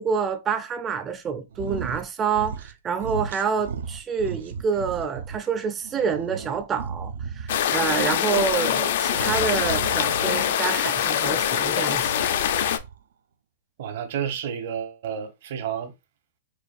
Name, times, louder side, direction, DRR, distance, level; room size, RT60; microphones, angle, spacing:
voice 1, 0.0-12.2, right 6 dB, 20° right, 0.4 m, -27 dB
sound 1, 1.5-2.1 2.3-2.7 3.0-5.4 5.8-7.7 9.1-10.5 11.9-13.0, right 6 dB, 85° right, 0.5 m, -35 dB
sound 2, 7.5-12.8, left 10 dB, 65° left, 0.5 m, -24 dB
voice 2, 13.8-15.9, right 8 dB, 65° right, 0.9 m, -30 dB
4.6 x 2.3 x 2.5 m
hypercardioid pair, 140°, 0 cm